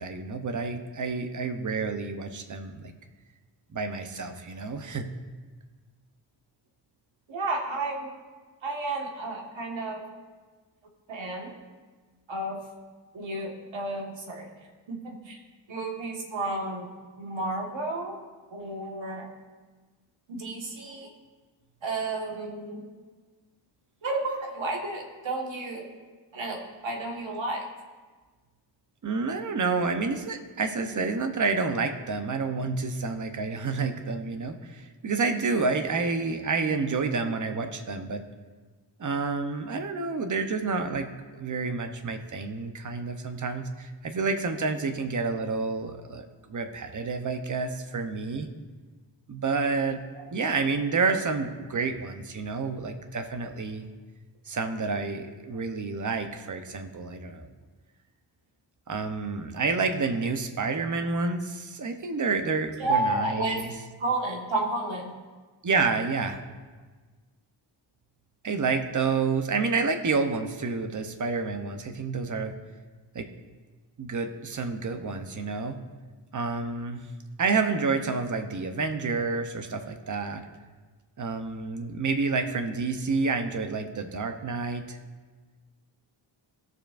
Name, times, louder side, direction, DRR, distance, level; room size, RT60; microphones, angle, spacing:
voice 1, 0.0-2.9 3.7-5.1 29.0-38.2 39.0-41.1 41.3-48.5 49.3-50.0 50.3-53.9 54.5-57.5 58.9-63.7 65.6-66.4 68.4-72.5 73.1-73.3 74.0-75.8 76.3-77.0 77.4-80.5 81.2-85.0, right 4 dB, 40° right, 7 dB, 0.8 m, -29 dB
voice 2, 7.3-8.1 8.6-10.0 11.1-11.5 12.3-12.6 13.1-14.5 14.9-15.4 15.7-16.9 17.2-18.2 18.5-19.3 20.3-21.1 21.8-22.8 24.0-25.9 26.3-27.7 50.2-50.3 62.8-63.7 64.0-65.1, right 2 dB, 80° right, 1 dB, 1.7 m, -31 dB
17.0 x 7.0 x 2.5 m, 1.3 s
wide cardioid pair, 155°, 45 cm